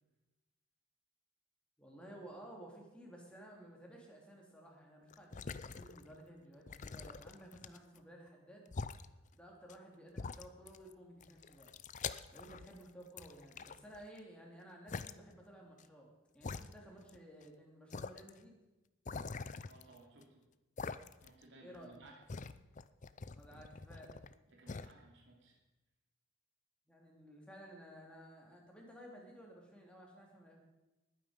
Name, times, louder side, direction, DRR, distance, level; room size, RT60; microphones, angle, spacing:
voice 1, 1.8-8.7 9.3-11.7 12.3-18.6 21.6-22.0 23.3-24.2 26.9-30.6, right 1 dB, 5° left, -2 dB, 3.0 m, -55 dB
sound 1, 5.1-6.2 6.7-8.0 8.7-9.1 9.7-9.8 10.2-10.9 11.2-12.8 13.2-14.2 14.9-15.1 15.8-15.9 16.4-17.2 17.4-17.5 17.9-18.3 19.1-20.2 20.8-21.4 21.7-24.3 24.7-24.9, left 4 dB, 35° left, 0.5 m, -45 dB
voice 2, 19.7-20.5 21.2-22.2 24.5-25.6, right 2 dB, 60° right, -1 dB, 2.8 m, -59 dB
20.0 x 9.4 x 5.2 m, 1.1 s
head